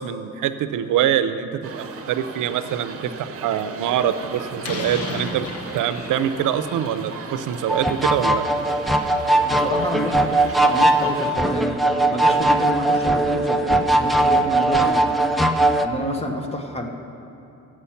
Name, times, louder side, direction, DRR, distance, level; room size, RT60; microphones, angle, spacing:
voice 1, 0.0-5.5 5.7-8.4, right 10 dB, 80° right, 11 dB, 0.6 m, -24 dB
sound 1, 1.6-11.4, right 5 dB, 50° right, 0.8 m, -37 dB
Slam, 3.8-12.4, left 3 dB, 50° left, 1.1 m, -38 dB
sound 2, 7.7-15.9, right 1 dB, ahead, 0.3 m, -19 dB
voice 2, 9.5-15.2 15.8-16.9, equal, 20° left, 3 dB, 1.0 m, -29 dB
14.0 x 7.6 x 5.7 m, 2.8 s
cardioid pair, 150°, 31 cm